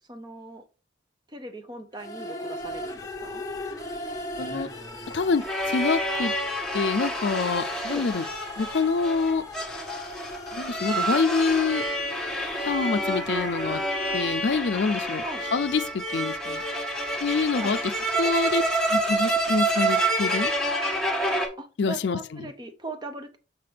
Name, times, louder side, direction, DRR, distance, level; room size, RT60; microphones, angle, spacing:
voice 1, 0.1-0.7 1.3-3.5 7.9-8.1 15.2-15.5 17.6-17.8 18.2-18.6 21.6-23.4, right 1 dB, 25° right, 0.8 m, -39 dB
sound 1, 1.9-15.8, left 1 dB, 20° left, 0.9 m, -39 dB
sound 2, 3.7-21.5, right 1 dB, 5° left, 1.3 m, -28 dB
voice 2, 4.3-4.7 5.1-6.3 6.7-8.2 8.6-9.4 10.5-11.9 12.7-13.8 14.1-15.2 15.5-16.6 17.2-17.8 18.2-18.6 18.9-20.5 21.8-22.5, left 4 dB, 65° left, 0.5 m, -26 dB
5.7 x 5.7 x 3.3 m
head